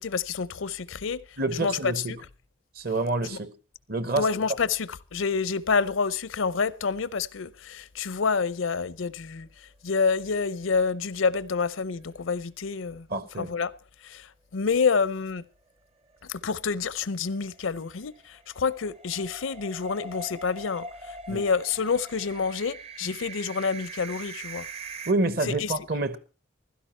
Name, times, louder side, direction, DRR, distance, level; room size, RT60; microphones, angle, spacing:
voice 1, 0.0-1.2 1.5-2.2 3.3-3.4 4.2-9.5 9.8-13.1 13.4-13.7 14.0-15.4 16.2-24.7 25.5-25.7, left 5 dB, 80° left, 0.6 m, -28 dB
voice 2, 1.4-2.1 2.8-3.5 3.9-4.3 13.1-13.5 21.3-21.4 25.1-26.2, right 2 dB, 50° right, 1.1 m, -27 dB
sound 1, 10.2-11.1 11.4-11.5 11.9-12.0 16.1-25.1, right 3 dB, 30° right, 0.7 m, -43 dB
15.5 x 12.5 x 4.4 m
head